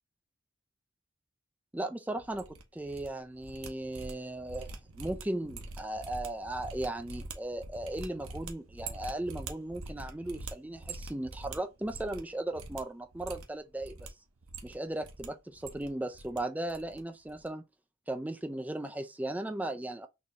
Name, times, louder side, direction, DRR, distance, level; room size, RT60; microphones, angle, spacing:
voice 1, 1.7-14.1 14.6-17.6 18.1-20.1, right 1 dB, 5° right, 0.3 m, -37 dB
sound 1, 2.2-3.1 3.3-12.3 12.5-12.8 13.1-14.1 14.4-15.3 15.5-16.4 16.7-17.0 17.2-17.5, right 3 dB, 85° right, 0.7 m, -44 dB
4.1 x 2.6 x 2.9 m
head